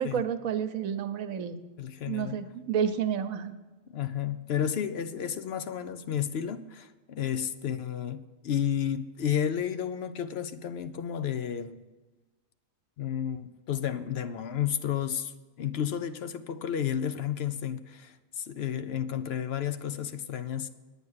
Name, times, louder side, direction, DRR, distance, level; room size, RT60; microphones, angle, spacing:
voice 1, 0.0-1.6 2.1-3.5, right 8 dB, 85° right, 1.2 m, -30 dB
voice 2, 1.8-2.4 3.9-11.8 13.0-15.3 15.6-20.7, left 9 dB, 60° left, 0.8 m, -32 dB
9.6 x 9.2 x 6.4 m
omnidirectional pair, 1.4 m